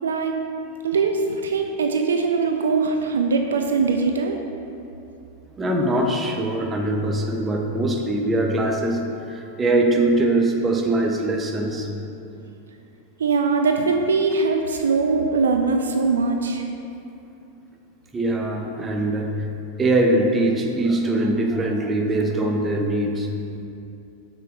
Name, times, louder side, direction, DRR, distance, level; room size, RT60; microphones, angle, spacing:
voice 1, 0.0-0.4 0.8-4.4 13.2-16.6, right 4 dB, 65° right, 4 dB, 0.3 m, -21 dB
voice 2, 5.6-12.0 18.1-19.5 19.8-23.3, right 1 dB, 20° right, 2 dB, 0.6 m, -22 dB
5.6 x 3.8 x 4.6 m, 2.7 s
figure-of-eight pair, 90°, 0 cm